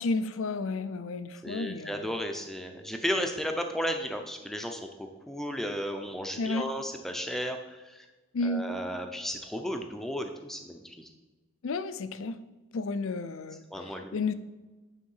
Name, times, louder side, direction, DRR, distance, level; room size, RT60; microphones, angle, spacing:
voice 1, 0.0-2.1 6.4-6.7 8.3-8.6 11.6-12.4 12.7-14.3, left 3 dB, 80° left, 13 dB, 0.5 m, -32 dB
voice 2, 1.4-7.6 7.8-8.0 8.4-11.1 13.7-14.2, equal, ahead, 5 dB, 0.6 m, -34 dB
9.0 x 3.7 x 5.6 m, 1.2 s
head